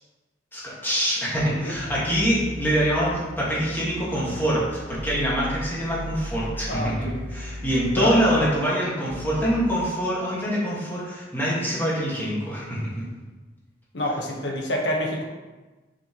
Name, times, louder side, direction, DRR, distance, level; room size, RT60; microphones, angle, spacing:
voice 1, 0.5-13.0, equal, 10° left, -7 dB, 1.8 m, -25 dB
sound 1, 1.4-8.5 9.1-9.8, equal, 65° right, 0.9 m, -37 dB
voice 2, 6.7-7.2 8.0-8.5 13.9-15.2, equal, 70° left, -1 dB, 1.3 m, -27 dB
6.9 x 5.5 x 3.1 m, 1.2 s
head